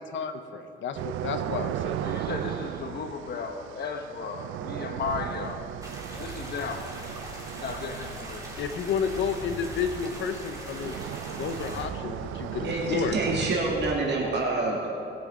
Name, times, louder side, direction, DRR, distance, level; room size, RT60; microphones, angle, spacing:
voice 1, 0.1-2.0 8.6-11.0 11.4-13.1, left 6 dB, 70° left, 8 dB, 0.9 m, -31 dB
sound 1, 0.9-13.5, right 12 dB, 80° right, 0.4 m, -36 dB
voice 2, 2.0-5.6 6.2-6.9 7.5-8.4, left 5 dB, 55° left, 4 dB, 1.4 m, -35 dB
sound 2, 5.0-13.9, equal, 20° left, 3.1 m, -43 dB
sound 3, 5.8-11.9, right 1 dB, 15° right, 2.8 m, -42 dB
voice 3, 12.6-14.9, right 3 dB, 60° right, -2 dB, 2.0 m, -27 dB
20.0 x 7.2 x 3.8 m, 2.6 s
cardioid pair, 90°, 20 cm